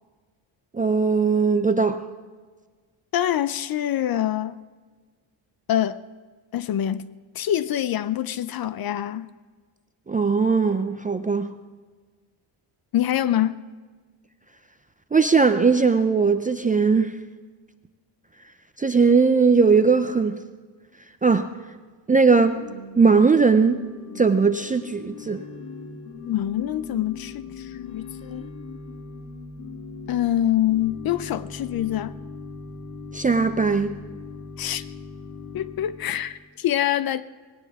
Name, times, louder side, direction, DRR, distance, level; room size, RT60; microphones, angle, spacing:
voice 1, 0.7-2.0 10.1-11.5 15.1-17.2 18.8-20.4 21.2-21.5 22.1-22.6 23.0-23.9 24.2-25.4 33.1-34.0, right 4 dB, 20° right, 0.3 m, -19 dB
voice 2, 3.1-4.6 5.7-6.0 6.5-7.1 7.3-9.3 12.9-13.6 26.3-28.5 30.1-32.2 34.6-34.8 35.5-37.2, left 11 dB, 50° left, 0.5 m, -25 dB
Organ / Church bell, 22.3-36.5, left 4 dB, 70° left, 1.6 m, -40 dB
19.5 x 17.0 x 3.5 m
cardioid pair, 165°, 48 cm